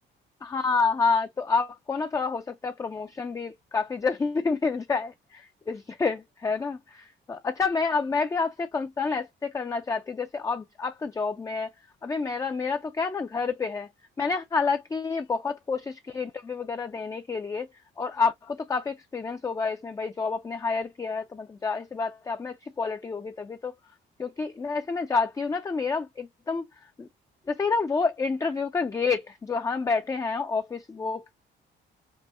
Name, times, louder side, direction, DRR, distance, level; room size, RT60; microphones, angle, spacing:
voice 1, 0.4-11.7 12.0-13.9 14.2-17.7 18.0-23.8 24.2-26.7 27.0-27.1 27.5-31.3, left 4 dB, 15° left, 0.3 m, -29 dB
5.4 x 2.0 x 2.4 m
cardioid pair, 90°, 20 cm